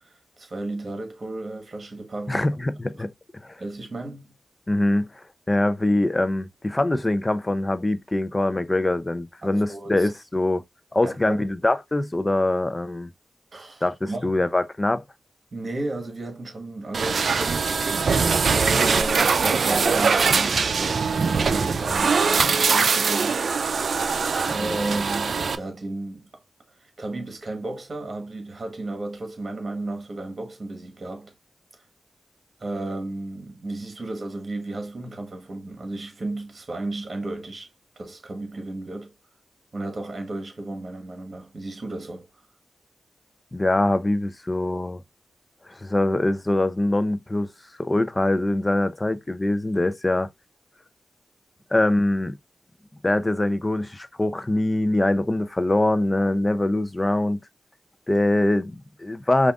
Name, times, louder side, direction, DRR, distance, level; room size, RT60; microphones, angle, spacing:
voice 1, 0.0-2.5 2.9-3.0 3.6-4.3 9.4-10.1 11.0-11.4 13.5-14.4 15.5-18.1 18.5-23.4 24.5-26.4 26.8-31.3 32.6-37.7 38.0-39.1 39.7-42.3, right 2 dB, 55° right, 1.4 m, -33 dB
voice 2, 2.3-3.1 3.4-3.6 4.7-10.6 10.9-13.1 13.8-15.0 24.6-24.8 43.5-45.0 45.7-47.5 47.8-50.3 51.7-52.4 53.0-57.4 58.1-59.5, left 1 dB, 25° left, 0.5 m, -23 dB
sound 1, 16.9-25.5, right 5 dB, 75° right, 0.4 m, -22 dB
5.2 x 2.5 x 2.4 m
cardioid pair, 55°, 0 cm